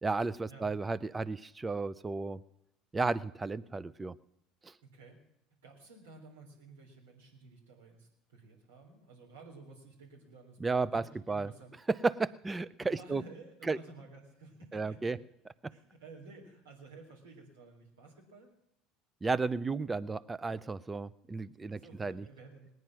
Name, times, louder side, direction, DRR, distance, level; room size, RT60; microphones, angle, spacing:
voice 1, 0.0-2.4 2.9-4.2 4.6-4.7 10.6-11.5 11.9-13.2 13.6-13.8 14.7-15.2 15.6-15.7 19.2-22.3, right 3 dB, 20° right, 18 dB, 0.6 m, -33 dB
voice 2, 4.8-5.2 5.6-11.7 12.9-15.2 15.7-18.5 21.7-22.7, right 3 dB, 85° right, -1 dB, 3.5 m, -53 dB
19.0 x 9.3 x 6.1 m, 0.80 s
hypercardioid pair, 75°, 0 cm